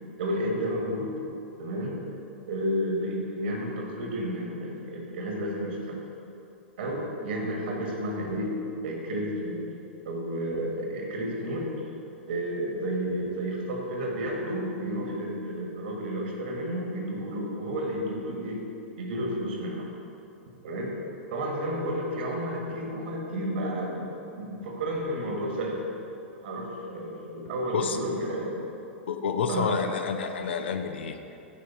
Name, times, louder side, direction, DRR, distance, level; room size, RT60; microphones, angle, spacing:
voice 1, 0.2-1.1 1.6-2.0 2.5-6.0 6.8-8.5 8.8-9.7 10.0-11.7 12.3-18.6 18.9-19.9 20.6-20.9 21.3-24.0 24.3-26.0 26.4-28.5 29.5-29.8, equal, 55° right, 0 dB, 1.5 m, -31 dB
voice 2, 29.1-31.2, left 6 dB, 60° left, 7 dB, 0.5 m, -29 dB
8.8 x 5.0 x 4.3 m, 2.8 s
figure-of-eight pair, 105°, 7 cm